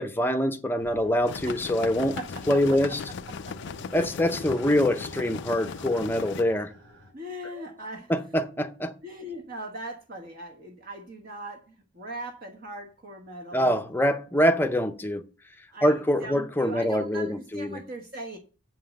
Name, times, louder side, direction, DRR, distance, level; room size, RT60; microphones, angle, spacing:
voice 1, 0.0-2.2 2.5-3.0 3.9-6.7 8.1-8.9 13.5-15.2 15.8-17.8, equal, 10° left, 0.7 m, -24 dB
sound 1, 0.8-7.1, equal, 65° right, 2.7 m, -47 dB
sound 2, 1.2-6.4, left 6 dB, 55° left, 0.3 m, -38 dB
voice 2, 1.4-2.8 3.3-3.7 7.1-8.1 9.0-13.7 15.7-18.4, right 1 dB, 45° right, 1.2 m, -40 dB
7.8 x 5.6 x 6.4 m
head